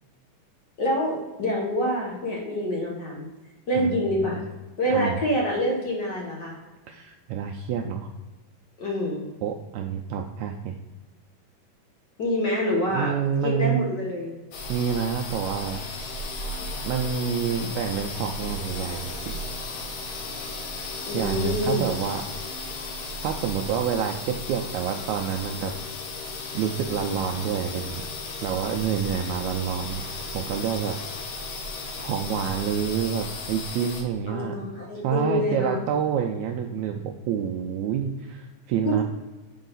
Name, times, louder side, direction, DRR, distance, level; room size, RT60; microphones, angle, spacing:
voice 1, 0.8-3.3 3.7-4.4 4.8-6.6 8.8-9.2 12.2-13.1 13.4-14.3 16.1-16.2 21.0-21.8 34.3-35.7 38.8-39.0, left 1 dB, 60° left, -2 dB, 1.1 m, -26 dB
voice 2, 4.9-5.2 6.9-8.1 9.4-10.7 12.9-13.8 14.7-15.8 16.8-19.1 21.1-22.2 23.2-25.7 26.5-28.1 28.4-30.0 30.3-31.0 32.0-34.6 35.0-39.0, right 8 dB, 85° right, 2 dB, 1.7 m, -28 dB
sound 1, 14.5-34.0, left 2 dB, 90° left, 2.7 m, -35 dB
7.3 x 4.6 x 3.9 m, 1.2 s
omnidirectional pair, 3.8 m